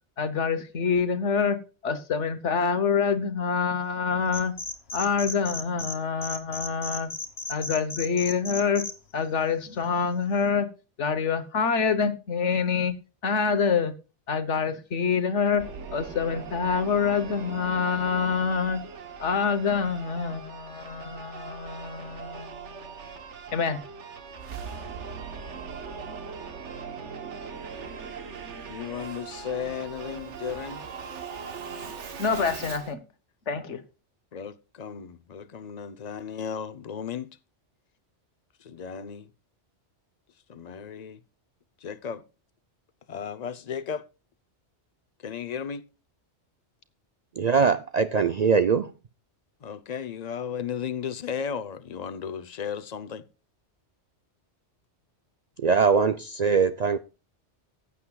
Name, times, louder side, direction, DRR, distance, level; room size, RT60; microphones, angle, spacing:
voice 1, 0.2-1.6 1.8-4.5 4.9-7.1 7.5-8.8 9.1-10.7 11.0-12.9 13.2-13.9 14.3-15.6 15.9-18.8 19.2-22.8 23.5-23.8 32.2-33.0 33.5-33.8, left 6 dB, 80° left, 1.4 m, -26 dB
sound 1, 4.3-6.0 6.2-8.9, left 3 dB, 60° left, 1.8 m, -34 dB
Singing / Musical instrument, 15.6-32.9, right 5 dB, 80° right, 1.4 m, -40 dB
voice 2, 28.7-30.9 34.3-37.3 38.6-39.3 40.5-41.2 41.8-42.2 43.1-44.0 45.2-45.8 49.6-53.2, left 7 dB, 40° left, 0.7 m, -35 dB
voice 3, 47.4-48.9 55.6-57.0, right 5 dB, 55° right, 0.5 m, -22 dB
15.5 x 8.3 x 2.3 m
omnidirectional pair, 1.2 m